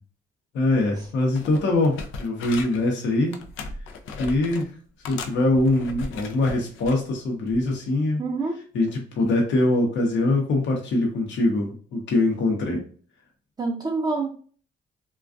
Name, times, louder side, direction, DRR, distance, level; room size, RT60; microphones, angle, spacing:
voice 1, 0.5-3.4 4.2-4.7 5.1-8.2 8.7-12.8, left 2 dB, 65° left, 0 dB, 0.8 m, -23 dB
sound 1, 0.9-1.1 1.3-2.9 3.3-4.7 5.0-7.0 7.5-7.7, left 3 dB, 85° left, 0.4 m, -37 dB
voice 2, 8.2-8.6 13.6-14.3, right 3 dB, 20° right, -2 dB, 0.5 m, -26 dB
2.4 x 2.3 x 2.4 m, 0.43 s
cardioid pair, 90°, 20 cm